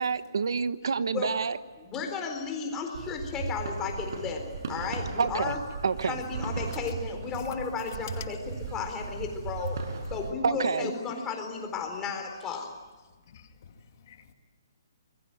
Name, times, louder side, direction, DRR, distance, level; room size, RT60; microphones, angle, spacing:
voice 1, 0.0-1.6 5.2-5.5 5.8-6.2 10.4-10.9, right 5 dB, 75° right, 13 dB, 1.2 m, -28 dB
voice 2, 1.8-5.6 6.0-9.8 10.1-12.7, left 5 dB, 15° left, 4 dB, 4.2 m, -34 dB
sound 1, 2.9-10.3, right 4 dB, 60° right, 5.7 m, -37 dB
voice 3, 13.3-14.3, left 7 dB, 45° left, 6 dB, 2.5 m, -53 dB
25.5 x 22.0 x 9.2 m, 1.4 s
hypercardioid pair, 160°, 2 cm